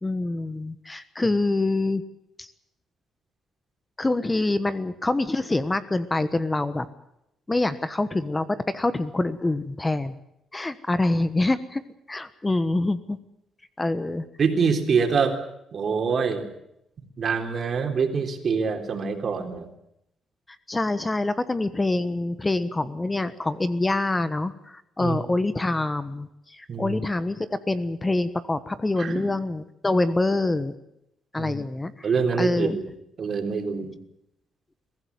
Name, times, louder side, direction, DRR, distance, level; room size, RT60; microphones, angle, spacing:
voice 1, 0.0-2.0 2.4-2.5 4.0-6.8 7.5-10.1 10.5-11.8 12.1-13.2 13.8-14.2 20.7-30.7 31.3-31.9 32.4-32.7, left 2 dB, 20° left, 12 dB, 1.2 m, -25 dB
voice 2, 14.4-15.4 15.7-16.5 17.2-19.7 25.0-25.2 26.7-27.0 28.9-29.3 31.4-31.6 32.0-32.9 33.2-33.9, right 5 dB, 50° right, 5 dB, 3.7 m, -25 dB
23.0 x 16.0 x 9.6 m, 0.82 s
cardioid pair, 90°, 0 cm